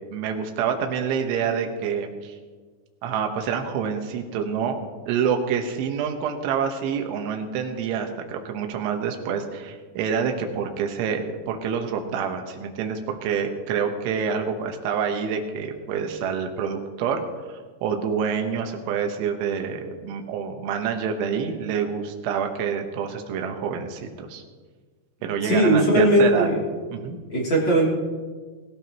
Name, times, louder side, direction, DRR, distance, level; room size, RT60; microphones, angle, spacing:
voice 1, 0.1-2.4 3.0-17.2 17.5-24.4 25.2-26.5 26.9-27.2, right 7 dB, 80° right, 4 dB, 3.6 m, -27 dB
voice 2, 25.4-26.6 27.3-27.9, right 1 dB, 30° left, -4 dB, 2.9 m, -18 dB
20.5 x 14.0 x 3.0 m, 1.4 s
omnidirectional pair, 5.4 m